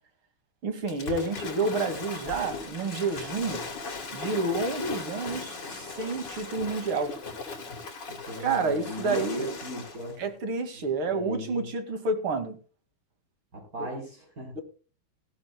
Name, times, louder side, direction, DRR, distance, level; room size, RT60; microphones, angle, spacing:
voice 1, 0.6-3.6 4.1-7.1 8.4-9.6 10.2-12.6 13.8-13.9 14.5-14.6, right 3 dB, 75° right, 7 dB, 3.0 m, -29 dB
Waves surf / Splash splatter, 0.9-10.1, left 4 dB, 55° left, 3.0 m, -38 dB
voice 2, 8.1-10.2 11.1-11.6 13.5-14.5, equal, 40° right, -2 dB, 4.7 m, -38 dB
18.5 x 14.5 x 2.3 m, 0.37 s
omnidirectional pair, 2.4 m